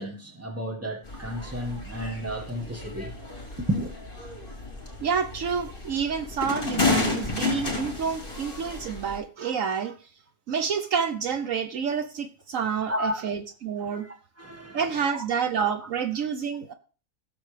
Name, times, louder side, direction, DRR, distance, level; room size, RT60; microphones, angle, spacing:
voice 1, 0.0-3.1 3.6-3.9 12.9-13.2 13.8-14.8 15.1-15.2, equal, 10° right, 1.6 m, -32 dB
sound 1, 1.1-9.2, left 3 dB, 35° left, 3.7 m, -32 dB
voice 2, 5.0-9.9 10.5-14.1 14.7-16.7, right 6 dB, 70° right, 1.2 m, -28 dB
16.5 x 7.5 x 3.3 m
omnidirectional pair, 1.5 m